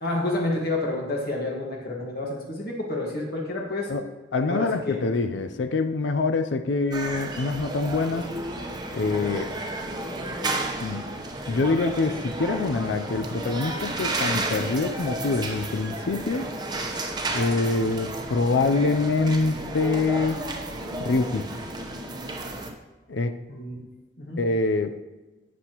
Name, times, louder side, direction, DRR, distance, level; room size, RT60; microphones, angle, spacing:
voice 1, 0.0-3.9 4.5-5.0 23.5-23.8 24.2-24.4, left 2 dB, 60° left, -2 dB, 1.6 m, -29 dB
voice 2, 4.3-8.3 8.9-9.5 10.8-11.1 11.5-16.5 17.3-20.4 21.0-21.5 23.1-23.3 24.4-25.0, left 3 dB, 80° left, 8 dB, 0.5 m, -25 dB
sound 1, 6.9-22.7, right 2 dB, 25° right, 0.9 m, -32 dB
11.0 x 8.2 x 3.0 m, 1.1 s
head